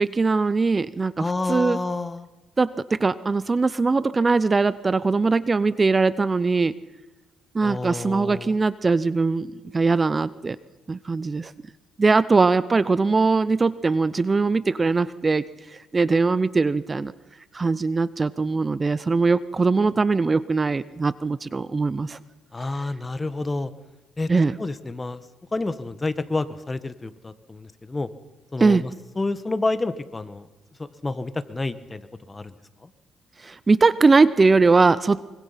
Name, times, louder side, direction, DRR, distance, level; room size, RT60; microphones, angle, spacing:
voice 1, 0.0-1.8 2.6-6.7 7.5-10.6 10.9-11.5 12.0-15.5 15.7-17.1 17.5-22.2 22.7-22.8 24.3-24.5 28.6-28.8 33.4-35.2, right 4 dB, 30° right, 17 dB, 0.7 m, -21 dB
voice 2, 1.2-2.3 7.6-8.5 22.5-23.7 24.2-24.3 24.6-25.2 25.5-28.1 28.5-28.9 29.2-30.5 30.8-32.5 32.8-32.9, left 2 dB, 20° left, 13 dB, 1.4 m, -29 dB
24.5 x 24.5 x 5.9 m, 1.1 s
cardioid pair, 90°, 0 cm